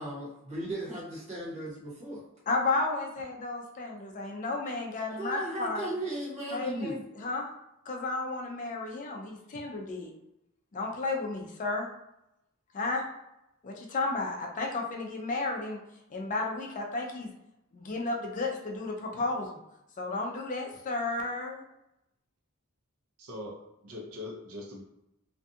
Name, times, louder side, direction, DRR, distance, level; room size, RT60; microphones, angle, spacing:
voice 1, 0.0-2.2 5.2-7.0, right 1 dB, 30° right, -6 dB, 1.1 m, -36 dB
voice 2, 2.5-5.9 6.5-7.5 7.9-10.1 10.7-11.9 12.7-13.0 13.6-15.8 16.1-17.3 17.7-19.6 20.0-21.6, left 3 dB, 35° left, 1 dB, 0.4 m, -33 dB
voice 3, 23.2-24.8, left 1 dB, 80° right, -1 dB, 0.7 m, -42 dB
2.5 x 2.3 x 2.6 m, 0.87 s
head